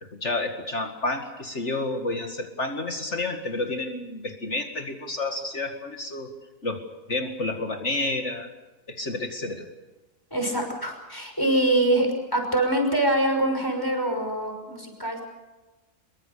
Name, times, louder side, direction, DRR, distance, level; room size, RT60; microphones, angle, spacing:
voice 1, 0.0-6.3 6.6-6.8 7.1-8.5 8.9-9.7, left 2 dB, 50° left, 4 dB, 2.4 m, -30 dB
voice 2, 10.3-15.2, right 1 dB, 15° left, 3 dB, 5.9 m, -24 dB
25.5 x 23.0 x 6.9 m, 1.1 s
omnidirectional pair, 1.5 m